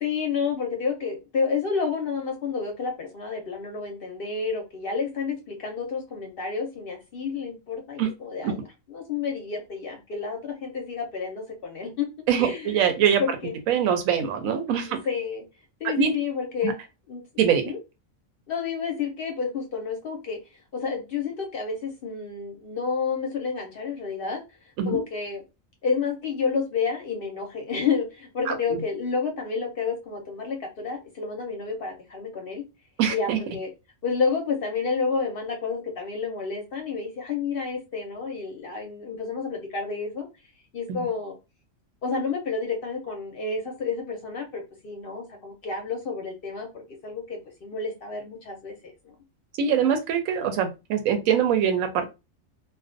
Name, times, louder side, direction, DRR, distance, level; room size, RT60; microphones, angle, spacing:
voice 1, 0.0-8.6 8.9-12.1 12.4-12.8 13.2-13.6 15.0-15.4 15.8-16.8 17.1-17.2 17.6-17.8 18.5-20.4 20.7-24.4 24.8-25.4 25.8-32.6 33.1-33.7 34.0-40.3 40.7-41.3 42.0-48.7 49.0-49.1, left 5 dB, 60° left, 2 dB, 0.6 m, -30 dB
voice 2, 12.3-13.2 13.7-15.0 16.0-16.1 16.6-16.7 17.4-17.6 24.8-25.0 28.5-28.6 33.0-33.4 40.9-41.1 49.6-52.1, right 8 dB, 90° right, 7 dB, 1.0 m, -23 dB
2.4 x 2.2 x 2.5 m, 0.26 s
omnidirectional pair, 1.4 m